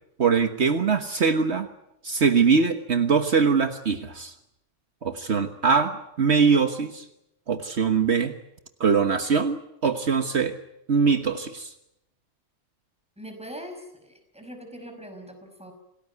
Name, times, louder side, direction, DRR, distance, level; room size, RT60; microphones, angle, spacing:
voice 1, 0.2-1.7 2.0-4.3 5.0-7.0 7.5-8.3 8.8-10.6 10.9-11.7, right 5 dB, 65° right, 7 dB, 1.6 m, -22 dB
voice 2, 13.2-15.7, equal, 5° right, 6 dB, 5.6 m, -41 dB
27.5 x 19.0 x 9.5 m, 0.84 s
omnidirectional pair, 1.2 m